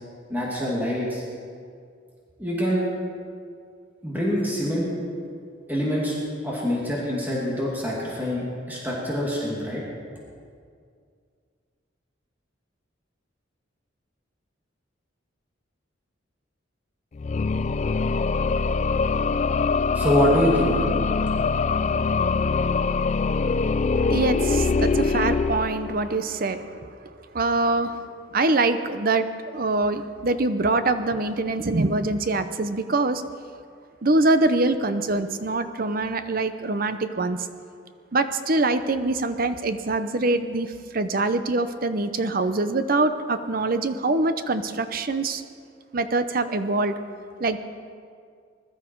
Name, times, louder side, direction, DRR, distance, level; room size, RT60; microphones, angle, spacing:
voice 1, 0.3-1.2 2.4-2.9 4.0-4.9 5.7-6.2 6.4-9.8 19.9-20.7, equal, 10° right, -5 dB, 2.5 m, -25 dB
sound 1, 17.1-26.2, left 4 dB, 35° left, 0.3 m, -23 dB
voice 2, 24.0-28.1 28.3-29.3 29.5-33.2 34.0-37.4 38.1-45.4 45.9-46.9 47.4-47.6, right 2 dB, 50° right, 10 dB, 0.7 m, -24 dB
21.0 x 12.5 x 4.6 m, 2.2 s
head